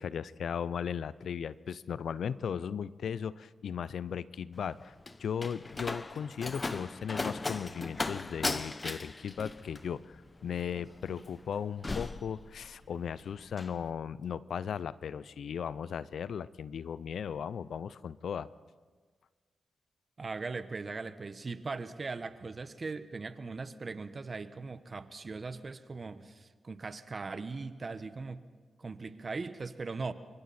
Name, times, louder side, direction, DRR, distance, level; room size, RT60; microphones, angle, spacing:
voice 1, 0.0-4.9 5.2-18.5, left 7 dB, 70° left, 18 dB, 0.5 m, -37 dB
Slam, 4.5-13.0 13.3-13.8, left 3 dB, 35° left, 1.0 m, -38 dB
voice 2, 20.2-28.4 28.8-30.1, right 4 dB, 45° right, 11 dB, 1.3 m, -39 dB
26.5 x 24.0 x 4.4 m, 1.5 s
supercardioid pair, 40°, 0 cm